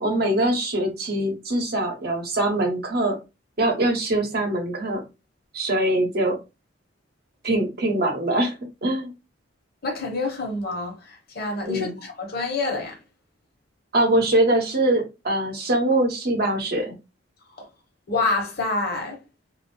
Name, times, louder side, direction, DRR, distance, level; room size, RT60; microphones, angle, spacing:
voice 1, 0.0-3.2 3.6-5.0 5.5-6.4 7.4-8.5 8.8-9.1 11.7-11.9 13.9-16.9, right 1 dB, 55° right, 0.9 m, -23 dB
voice 2, 9.8-13.0 17.6-17.7 18.1-19.2, left 2 dB, 55° left, 1.1 m, -27 dB
2.6 x 2.0 x 3.0 m
head